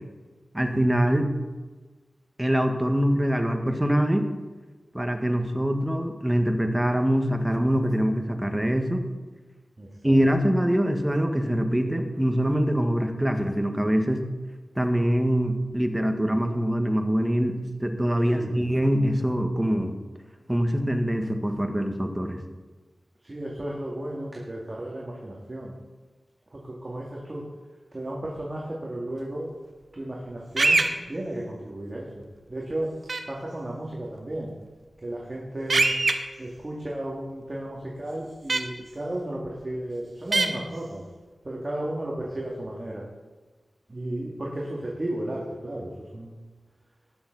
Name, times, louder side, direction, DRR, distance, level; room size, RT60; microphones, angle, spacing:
voice 1, 0.5-1.3 2.4-4.3 4.9-9.0 10.0-14.2 14.7-20.0 20.5-22.4, equal, 10° right, 5 dB, 1.5 m, -24 dB
voice 2, 9.8-10.2 18.3-18.7 23.2-25.7 26.5-27.4 27.9-29.5 29.9-33.0 33.3-34.5 35.0-36.0 36.4-41.0 41.4-43.0 43.9-46.4, right 1 dB, 35° right, -3 dB, 2.2 m, -34 dB
sound 1, 30.6-30.9 33.1-33.2 35.7-36.1 38.5-38.6 40.3-40.5, right 3 dB, 55° right, 1.1 m, -21 dB
19.0 x 7.1 x 4.0 m, 1.3 s
cardioid pair, 55°, 0 cm